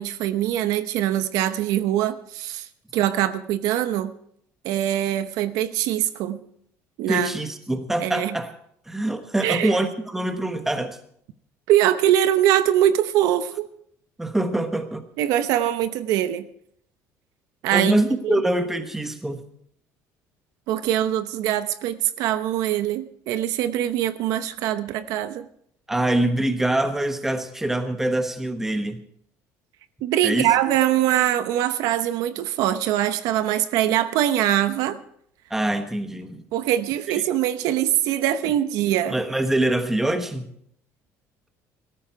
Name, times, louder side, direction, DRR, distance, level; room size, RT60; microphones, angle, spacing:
voice 1, 0.0-2.7 2.9-4.1 4.6-6.4 7.0-7.3 8.0-8.3 9.4-9.8 11.7-13.7 15.2-16.5 17.6-18.4 20.7-25.5 30.0-35.0 36.5-39.2, right 12 dB, 75° right, 11 dB, 0.9 m, -23 dB
voice 2, 7.1-8.5 8.9-11.0 14.2-15.0 17.7-19.4 25.9-29.0 30.2-30.5 35.5-36.4 39.1-40.5, right 1 dB, 5° right, 8 dB, 1.2 m, -24 dB
17.0 x 13.5 x 4.7 m, 0.69 s
cardioid pair, 160°, 6 cm